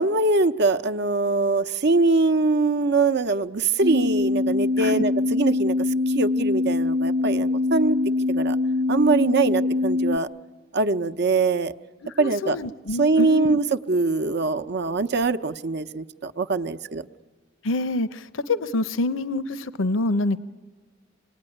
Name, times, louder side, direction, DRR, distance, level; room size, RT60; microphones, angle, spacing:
voice 1, 0.0-5.7 6.1-8.0 8.3-8.6 8.9-10.3 10.7-11.7 12.2-12.6 13.0-17.0, right 3 dB, 60° right, 10 dB, 0.8 m, -22 dB
sound 1, 3.8-10.2, left 3 dB, 25° right, 0.8 m, -23 dB
voice 2, 12.0-13.6 17.6-20.4, left 2 dB, 80° left, 14 dB, 0.7 m, -26 dB
26.0 x 20.0 x 9.9 m, 1.4 s
head